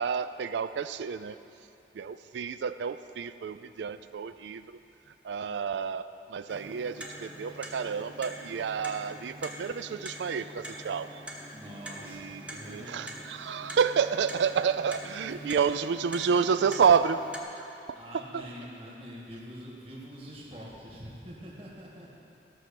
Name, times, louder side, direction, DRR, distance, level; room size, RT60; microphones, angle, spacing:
voice 1, 0.0-1.4 1.9-4.8 5.2-11.2 12.1-17.7 18.3-18.5, right 6 dB, 80° right, 12 dB, 0.4 m, -29 dB
Clock, 6.5-17.4, equal, 5° right, 0.9 m, -44 dB
voice 2, 11.5-13.8 15.2-15.7 17.9-22.2, equal, 30° right, -5 dB, 1.8 m, -45 dB
14.5 x 5.9 x 6.9 m, 2.7 s
head